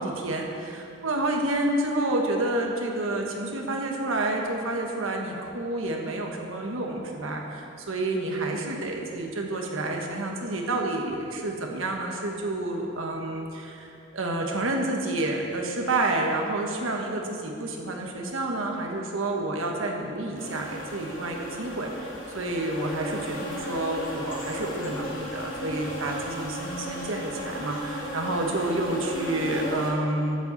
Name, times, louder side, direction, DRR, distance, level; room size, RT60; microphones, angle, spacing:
voice 1, 0.0-30.4, right 2 dB, 90° right, 1 dB, 1.4 m, -29 dB
sound 1, 20.4-29.9, equal, 70° left, 2.8 m, -35 dB
14.5 x 8.0 x 4.1 m, 2.7 s
head